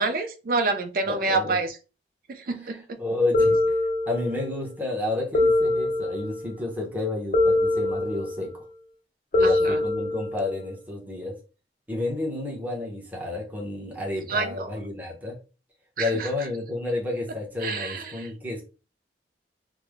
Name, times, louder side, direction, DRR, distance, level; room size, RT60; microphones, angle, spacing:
voice 1, 0.0-1.8 2.3-3.0 9.4-9.8 14.3-14.8 16.0-16.3 17.6-18.3, right 3 dB, 50° right, 0.4 m, -28 dB
voice 2, 1.1-1.6 2.7-8.6 9.3-11.3 11.9-15.4 16.0-18.6, left 2 dB, 10° right, 0.9 m, -31 dB
sound 1, 3.3-4.5 5.3-6.5 7.3-8.5 9.3-10.5, left 2 dB, 45° left, 0.5 m, -23 dB
3.3 x 2.1 x 3.4 m
head